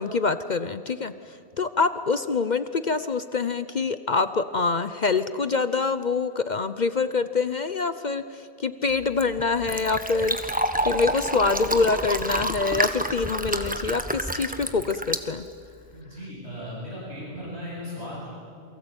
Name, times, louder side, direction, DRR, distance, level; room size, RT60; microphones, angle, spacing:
voice 1, 0.0-15.5, left 4 dB, 45° left, 12 dB, 0.9 m, -25 dB
Fill (with liquid), 8.9-16.0, right 1 dB, 10° right, 1.3 m, -29 dB
voice 2, 15.9-18.3, left 1 dB, 80° right, -5 dB, 8.5 m, -37 dB
28.5 x 23.5 x 8.9 m, 2.4 s
omnidirectional pair, 1.1 m